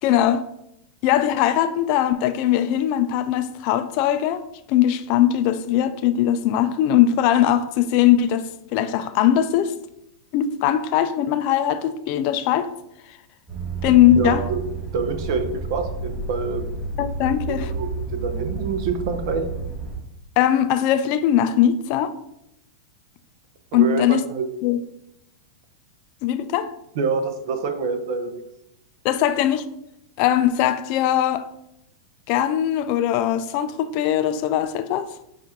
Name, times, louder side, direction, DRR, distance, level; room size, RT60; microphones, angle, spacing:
voice 1, 0.0-0.4 1.0-4.4 4.7-9.7 10.3-12.7 13.8-14.4 17.0-17.7 20.4-22.1 23.7-24.2 24.6-24.8 26.2-26.7 29.0-29.7 30.2-31.5 32.3-35.1, left 11 dB, 50° left, 0.3 m, -20 dB
sound 1, 13.5-20.0, right 4 dB, 15° right, 1.2 m, -30 dB
voice 2, 14.1-14.6 14.9-16.7 17.3-19.4 23.7-24.5 27.0-28.4, right 4 dB, 60° right, 0.6 m, -26 dB
5.7 x 2.4 x 2.8 m
hypercardioid pair, 110°, 3 cm